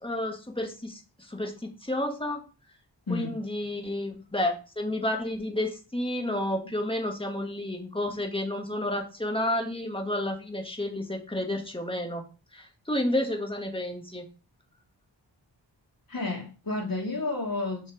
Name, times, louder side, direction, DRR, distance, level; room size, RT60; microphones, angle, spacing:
voice 1, 0.0-2.4 3.1-12.2 12.5-14.3, left 1 dB, 10° left, 2.0 m, -31 dB
voice 2, 16.1-17.9, left 2 dB, 50° left, 3.6 m, -31 dB
6.6 x 6.4 x 3.4 m
wide cardioid pair, 60°, 45 cm